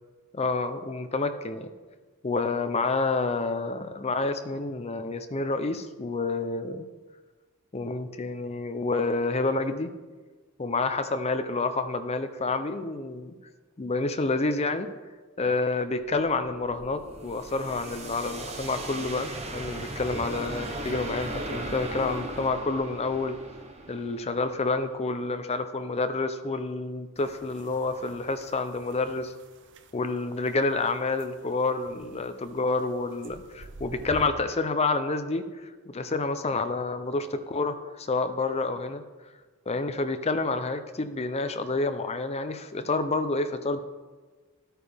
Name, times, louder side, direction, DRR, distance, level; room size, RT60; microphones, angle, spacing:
voice 1, 0.3-1.7 2.2-6.9 7.7-9.9 10.6-13.3 13.8-14.9 15.4-23.4 23.9-29.3 29.9-39.0 39.7-43.8, left 3 dB, 30° left, 9 dB, 0.6 m, -29 dB
sound 1, 16.0-24.9, right 2 dB, 30° right, 0.9 m, -38 dB
sound 2, 27.2-34.3, right 3 dB, 55° right, 0.7 m, -48 dB
13.0 x 9.0 x 3.5 m, 1.4 s
head